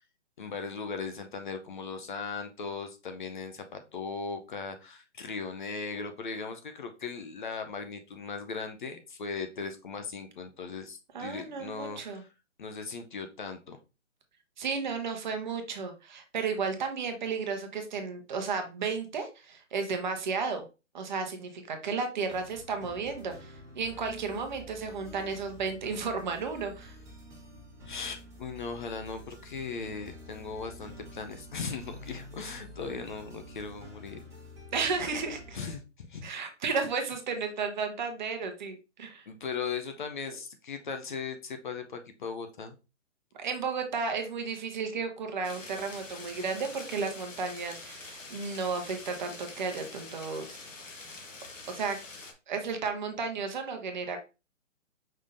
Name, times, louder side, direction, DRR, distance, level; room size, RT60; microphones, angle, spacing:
voice 1, 0.4-12.3 12.6-13.8 27.9-34.2 35.5-36.3 39.3-42.7, left 5 dB, 40° left, 6 dB, 0.6 m, -38 dB
voice 2, 11.1-12.2 14.6-20.6 20.9-27.0 34.7-35.6 36.2-39.3 43.3-50.6 51.7-52.0 52.5-54.2, right 5 dB, 40° right, 6 dB, 1.0 m, -33 dB
sound 1, 22.3-35.8, equal, 5° right, 1.3 m, -48 dB
sound 2, 45.4-52.3, left 3 dB, 90° left, 1.5 m, -45 dB
5.4 x 3.6 x 2.6 m, 0.29 s
hypercardioid pair, 150°, 37 cm